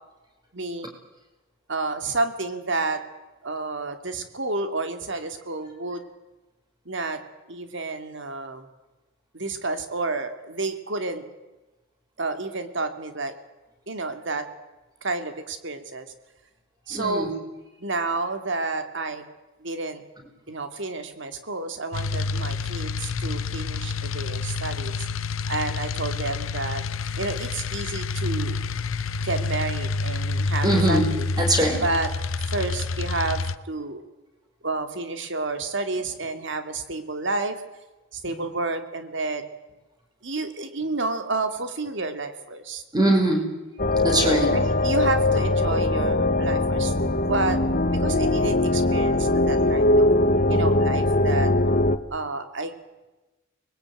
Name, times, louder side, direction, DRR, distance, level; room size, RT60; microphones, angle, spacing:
voice 1, 0.5-0.9 1.7-3.0 3.4-6.0 6.9-7.2 7.5-8.7 9.3-11.2 12.2-13.3 13.9-14.5 15.0-16.1 16.9-17.3 17.8-19.2 19.6-20.0 20.5-25.1 25.5-26.8 27.2-28.6 29.2-31.3 31.8-32.1 32.4-34.0 34.6-37.6 38.1-39.4 40.2-42.8 44.5-46.9 47.2-47.6 47.9-50.1 50.5-51.5 52.1-52.7, right 3 dB, 65° right, 8 dB, 2.6 m, -30 dB
voice 2, 16.9-17.3 30.6-31.1 31.4-31.8 38.2-38.3 42.9-43.4 44.0-44.6, right 1 dB, 20° right, 2 dB, 5.3 m, -21 dB
sound 1, 21.9-33.6, left 4 dB, 90° left, 0.9 m, -28 dB
sound 2, 43.8-52.0, left 2 dB, 45° left, 1.3 m, -21 dB
24.5 x 21.0 x 9.1 m, 1.1 s
head